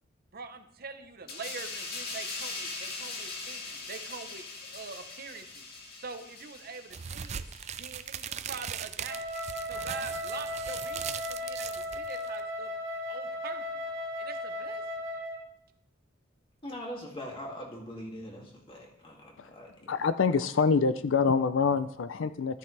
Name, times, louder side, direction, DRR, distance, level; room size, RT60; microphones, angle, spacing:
voice 1, 0.3-5.6 6.0-7.4 7.8-9.3 9.7-12.7 13.1-13.8 14.2-14.8, right 5 dB, 50° right, 7 dB, 0.9 m, -44 dB
sound 1, 1.3-8.5 8.8-9.0, left 3 dB, 55° left, 1.9 m, -41 dB
sound 2, 6.9-12.4, right 8 dB, 35° right, 0.4 m, -39 dB
Wind instrument woodwind instrument, 9.1-15.5, left 1 dB, 80° right, 2.1 m, -36 dB
voice 2, 16.6-20.0, equal, 30° left, -1 dB, 2.4 m, -42 dB
voice 3, 19.9-22.6, left 5 dB, 70° left, 13 dB, 0.5 m, -26 dB
13.5 x 9.5 x 3.3 m, 0.74 s
head